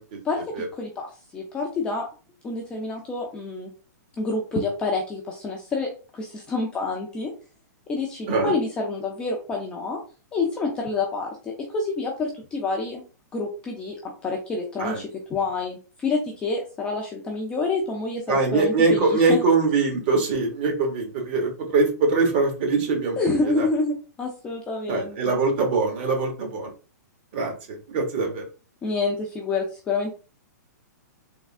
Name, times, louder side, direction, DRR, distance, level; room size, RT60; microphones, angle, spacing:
voice 1, 0.7-1.1 1.3-2.1 2.4-3.7 4.2-7.3 7.9-10.0 10.3-13.0 13.3-19.4 23.2-25.4 28.8-30.1, left 3 dB, 10° left, 0 dB, 0.4 m, -28 dB
voice 2, 18.3-23.2 23.4-23.7 24.9-26.7 27.3-28.4, right 3 dB, 35° right, 2 dB, 1.0 m, -23 dB
3.6 x 3.1 x 2.4 m, 0.35 s
hypercardioid pair, 170°, 10 cm